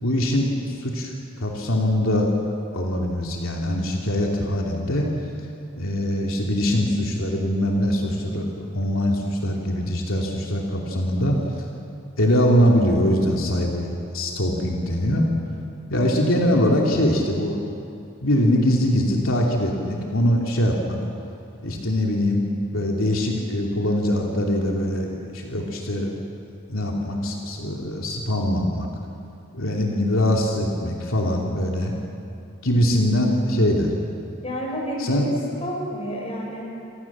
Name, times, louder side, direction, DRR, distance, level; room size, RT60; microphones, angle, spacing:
voice 1, 0.0-2.3 2.7-5.1 5.8-11.4 12.2-13.9 14.1-15.3 15.9-17.8 18.2-21.0 21.6-22.4 22.7-26.1 26.7-28.9 29.5-31.9 32.6-33.9 35.0-35.3, equal, 80° left, -1 dB, 2.9 m, -22 dB
voice 2, 34.4-35.3 35.6-36.7, equal, 30° left, -1 dB, 7.2 m, -30 dB
28.0 x 26.5 x 7.4 m, 2.7 s
head